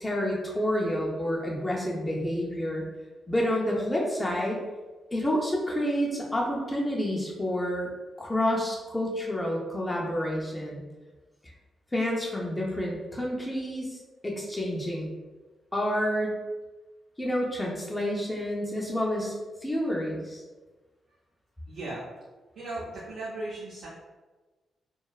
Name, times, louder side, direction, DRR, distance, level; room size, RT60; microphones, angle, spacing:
voice 1, 0.0-2.8 3.3-4.6 5.1-7.9 8.2-10.8 11.9-14.0 14.2-15.1 15.7-16.4 17.2-19.3 19.6-20.4, equal, 15° left, -3 dB, 0.4 m, -29 dB
voice 2, 21.7-22.0 22.5-23.9, right 2 dB, 70° right, -7 dB, 0.6 m, -36 dB
3.0 x 2.0 x 2.3 m, 1.2 s
cardioid pair, 115°, 0 cm